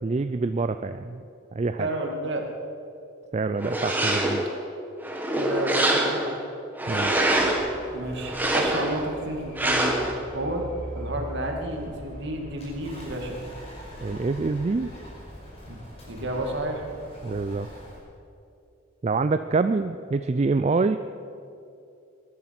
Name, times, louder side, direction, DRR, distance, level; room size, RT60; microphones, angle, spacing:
voice 1, 0.0-1.2 1.5-1.9 3.3-4.4 6.9-7.2 14.0-14.9 17.2-17.7 19.0-21.0, right 3 dB, 30° right, 10 dB, 0.3 m, -26 dB
voice 2, 1.8-2.5 5.4-6.3 7.9-10.7 10.9-13.4 15.7-15.8 16.1-16.8, right 1 dB, 55° right, 2 dB, 2.3 m, -31 dB
sound 1, 3.6-4.5 5.0-6.3 6.8-7.7 8.2-9.0 9.6-10.1, right 1 dB, 10° right, 1.6 m, -24 dB
Bird, 7.0-18.0, equal, 30° left, 5.1 m, -42 dB
21.0 x 11.0 x 6.0 m, 2.6 s
head